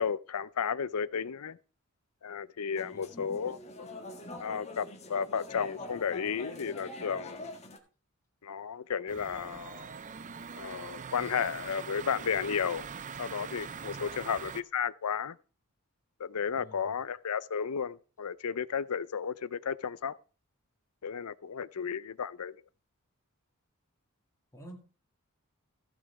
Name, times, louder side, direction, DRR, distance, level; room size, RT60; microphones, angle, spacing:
voice 1, 0.0-1.6 2.2-3.9 4.4-7.6 8.4-9.9 10.6-12.9 13.2-15.4 16.2-20.1 21.0-22.6, left 7 dB, 85° left, 0.6 m, -33 dB
sound 1, 2.8-7.8, left 2 dB, 30° left, 1.6 m, -44 dB
sound 2, 9.1-14.6, right 6 dB, 35° right, 0.5 m, -42 dB
voice 2, 13.7-14.5 16.5-17.0 21.9-22.0 24.5-24.8, equal, 15° left, 2.5 m, -52 dB
15.0 x 6.3 x 4.8 m
head